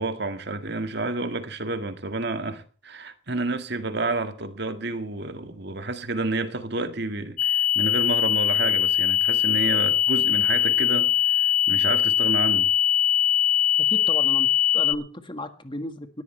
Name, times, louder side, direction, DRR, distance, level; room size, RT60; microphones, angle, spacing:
voice 1, 0.0-12.7, right 2 dB, 55° right, 1.9 m, -30 dB
sound 1, 7.4-14.9, left 11 dB, 40° left, 0.9 m, -21 dB
voice 2, 13.9-14.5 14.7-16.2, left 1 dB, 25° left, 1.7 m, -34 dB
18.5 x 13.5 x 3.3 m
head